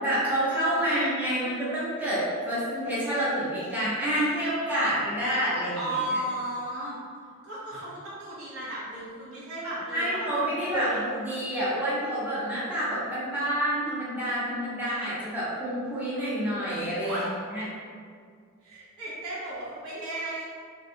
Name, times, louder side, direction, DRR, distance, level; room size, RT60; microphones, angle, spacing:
voice 1, 0.0-5.9 9.9-17.3 17.5-17.6, right 1 dB, 10° right, -10 dB, 0.6 m, -28 dB
voice 2, 5.8-7.0 7.4-11.0 17.0-17.3 18.6-20.4, right 1 dB, 75° right, -9 dB, 0.9 m, -34 dB
2.5 x 2.3 x 2.7 m, 2.1 s
head